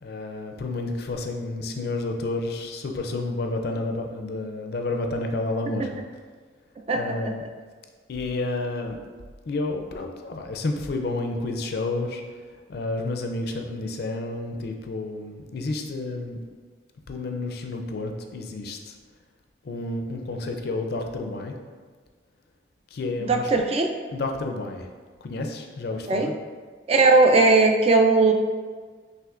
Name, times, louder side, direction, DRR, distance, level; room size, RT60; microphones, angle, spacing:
voice 1, 0.0-6.0 6.9-7.4 8.1-9.0 9.5-12.2 12.7-16.4 17.1-18.9 19.6-21.5 22.9-23.5 24.1-24.9 25.2-26.3, left 2 dB, 60° left, 4 dB, 0.4 m, -30 dB
voice 2, 6.9-7.3 23.2-23.9 26.1-26.3 26.9-28.3, right 3 dB, 35° right, 4 dB, 0.3 m, -18 dB
5.9 x 2.9 x 2.4 m, 1.5 s
head